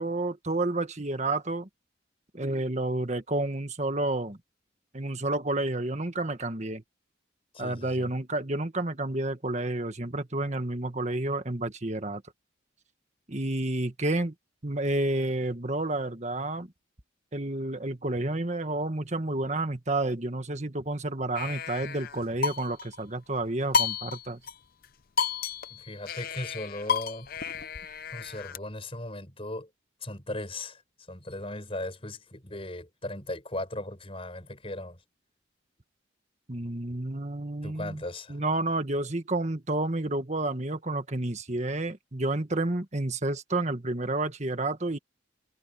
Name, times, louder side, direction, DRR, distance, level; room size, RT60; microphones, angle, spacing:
voice 1, 0.0-1.7 2.3-4.4 4.9-6.8 7.6-12.2 13.3-14.3 14.6-16.7 17.3-24.4 36.5-38.0 38.3-45.0, right 2 dB, 35° right, 1.6 m, -30 dB
voice 2, 7.5-8.1 25.7-27.3 28.1-29.7 30.0-30.8 31.1-35.0 37.6-38.4, left 1 dB, 30° left, 6.1 m, -37 dB
sound 1, 21.4-23.0 23.7-24.5 24.8-24.9 25.2-28.6, left 5 dB, 50° left, 0.7 m, -31 dB
head